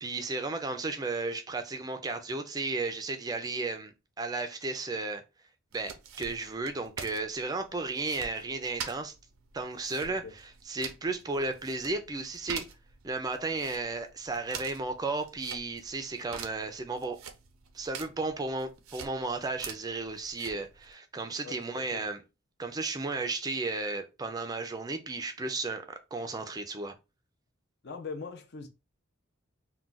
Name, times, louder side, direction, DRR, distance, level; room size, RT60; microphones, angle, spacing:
voice 1, 0.0-5.2 5.7-9.1 9.5-12.7 13.0-17.2 17.7-22.2 22.6-25.8 26.1-26.9, right 3 dB, 20° right, 0.4 m, -34 dB
sound 1, 5.7-20.9, right 6 dB, 85° right, 0.5 m, -46 dB
voice 2, 27.8-28.7, left 4 dB, 55° left, 0.5 m, -41 dB
2.4 x 2.2 x 3.8 m
head